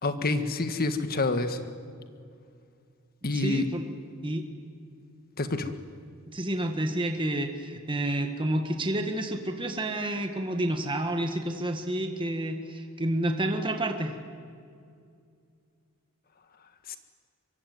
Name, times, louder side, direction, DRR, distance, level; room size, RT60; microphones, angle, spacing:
voice 1, 0.0-1.6 3.2-3.6 5.4-5.7 16.9-17.0, left 2 dB, 45° left, 9 dB, 1.6 m, -27 dB
voice 2, 3.3-3.9 4.2-4.4 6.3-14.2, right 1 dB, 20° right, 5 dB, 1.7 m, -29 dB
24.0 x 23.5 x 9.5 m, 2.3 s
head